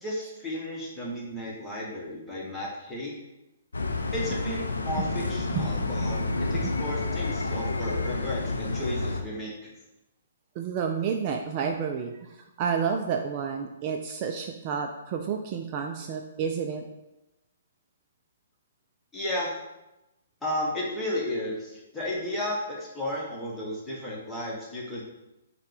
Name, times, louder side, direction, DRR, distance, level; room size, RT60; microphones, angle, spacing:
voice 1, 0.0-3.2 4.1-9.7 19.1-19.6 20.4-25.0, left 1 dB, 10° left, -5 dB, 1.1 m, -33 dB
sound 1, 3.7-9.2, left 3 dB, 90° left, 0.5 m, -29 dB
voice 2, 5.5-6.4 6.6-6.7 10.6-16.8, right 6 dB, 35° right, 3 dB, 0.3 m, -30 dB
5.6 x 2.2 x 3.3 m, 0.94 s
hypercardioid pair, 135°, 0 cm